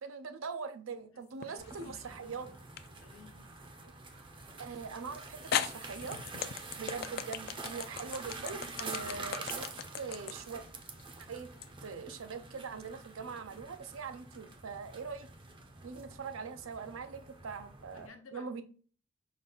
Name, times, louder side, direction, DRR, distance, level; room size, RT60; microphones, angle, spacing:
voice 1, 0.0-2.5 3.8-3.9 4.6-6.2 6.8-10.6 11.3-11.5 11.8-15.3 15.8-18.6, right 5 dB, 85° right, 0.5 m, -42 dB
voice 2, 1.1-2.6 3.0-3.5 17.9-18.6, left 4 dB, 85° left, 0.9 m, -57 dB
sound 1, 1.4-2.0 2.8-2.9 4.8-4.9 5.5-11.7, left 9 dB, 50° left, 0.3 m, -37 dB
sound 2, 1.6-18.1, right 3 dB, 25° right, 0.5 m, -47 dB
5.2 x 2.4 x 3.8 m
head